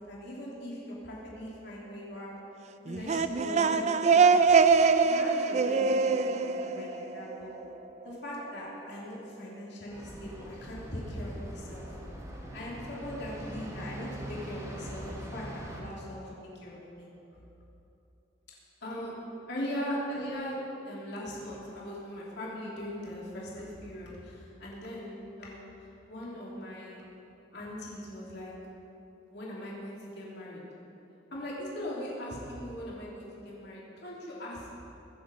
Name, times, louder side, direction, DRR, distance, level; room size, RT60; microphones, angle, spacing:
voice 1, 0.1-2.3 2.9-4.7 5.0-7.5 8.0-11.8 12.5-17.1 18.8-19.1 19.5-20.6 20.8-25.7 26.1-27.0 27.5-28.5 29.3-30.6 31.3-34.7, equal, 65° left, -5 dB, 3.2 m, -40 dB
sound 1, 2.9-7.6, right 5 dB, 40° right, 0.5 m, -24 dB
sound 2, 9.9-15.8, right 1 dB, 20° right, 2.6 m, -42 dB
23.5 x 7.9 x 5.4 m, 2.9 s
head